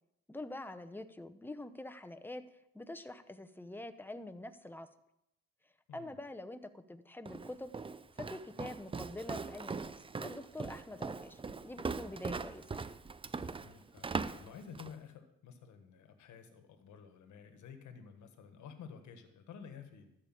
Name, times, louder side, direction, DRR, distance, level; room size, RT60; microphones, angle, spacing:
voice 1, 0.3-2.4 2.7-4.9 5.9-7.7 8.2-9.9 10.2-12.9, left 1 dB, 5° left, 9 dB, 0.8 m, -46 dB
Walk footsteps, 7.3-15.0, right 4 dB, 20° right, 0.5 m, -41 dB
voice 2, 13.4-20.2, left 6 dB, 75° left, 7 dB, 1.4 m, -52 dB
13.0 x 5.1 x 7.6 m, 0.81 s
cardioid pair, 90°, 30 cm